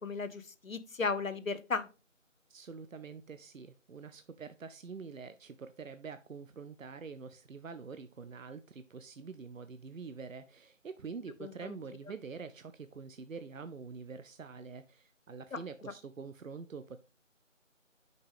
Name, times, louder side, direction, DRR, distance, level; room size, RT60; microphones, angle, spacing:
voice 1, 0.0-1.9 11.4-11.8 15.5-15.6, left 4 dB, 85° left, 13 dB, 0.8 m, -35 dB
voice 2, 2.5-17.0, right 5 dB, 85° right, 11 dB, 0.6 m, -46 dB
5.8 x 5.2 x 3.4 m, 0.32 s
figure-of-eight pair, 175°, 39 cm